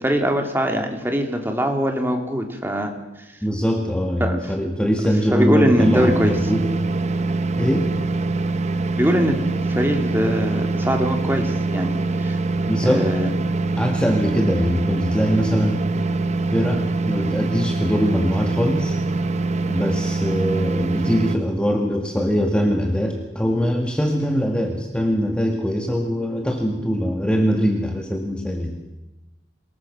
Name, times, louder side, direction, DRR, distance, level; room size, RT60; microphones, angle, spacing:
voice 1, 0.0-2.9 4.2-4.5 5.3-6.3 8.9-9.4 9.8-12.4 12.8-13.3, equal, 10° right, 3 dB, 2.8 m, -22 dB
voice 2, 3.4-6.7 7.6-7.9 12.7-13.1 13.8-15.8 16.5-19.0 19.7-28.8, equal, 5° left, 2 dB, 2.0 m, -22 dB
sound 1, 5.8-21.4, right 3 dB, 40° right, 0.9 m, -24 dB
24.0 x 21.0 x 6.2 m, 1.0 s
head